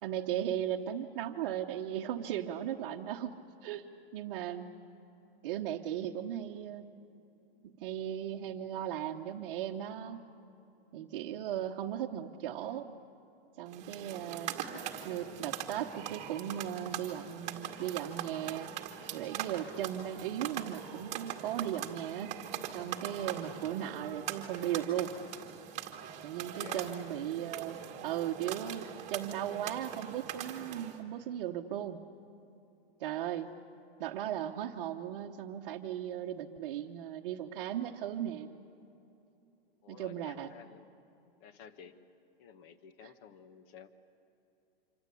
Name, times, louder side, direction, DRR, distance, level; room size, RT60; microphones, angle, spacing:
voice 1, 0.0-3.9 4.1-4.7 5.4-7.0 7.6-10.2 10.9-12.9 13.6-14.5 15.0-18.7 19.1-22.4 22.7-25.1 26.2-32.0 33.0-33.5 34.0-38.5 39.9-40.5 43.0-43.1, right 10 dB, 45° right, -2 dB, 1.2 m, -37 dB
sound 1, 13.7-31.0, right 10 dB, 20° right, 1.7 m, -42 dB
voice 2, 26.3-27.1 39.8-40.9 41.4-42.0 42.4-43.9, left 7 dB, 30° left, 11 dB, 1.3 m, -53 dB
26.5 x 25.0 x 8.5 m, 2.8 s
supercardioid pair, 165°, 31 cm